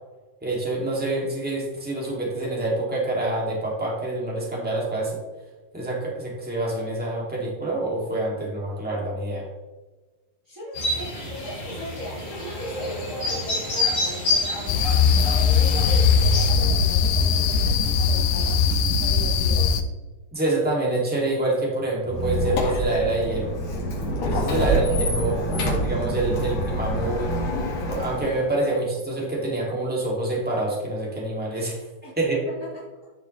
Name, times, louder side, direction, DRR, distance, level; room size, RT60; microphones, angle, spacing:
voice 1, 0.4-5.2 5.7-9.4 20.3-23.5 24.2-27.3 27.9-31.8 32.2-32.4, right 2 dB, 5° right, -4 dB, 1.3 m, -26 dB
voice 2, 10.4-14.9 15.1-19.7 24.6-25.0 25.5-25.9 28.7-28.8 32.0-33.1, equal, 75° right, -6 dB, 0.7 m, -38 dB
sound 1, 10.7-16.5, left 2 dB, 25° left, 3.0 m, -28 dB
sound 2, 14.7-19.8, left 5 dB, 80° left, 2.7 m, -20 dB
Squeak, 22.0-28.5, equal, 50° left, 2.5 m, -26 dB
12.0 x 7.0 x 3.3 m, 1.3 s
omnidirectional pair, 4.8 m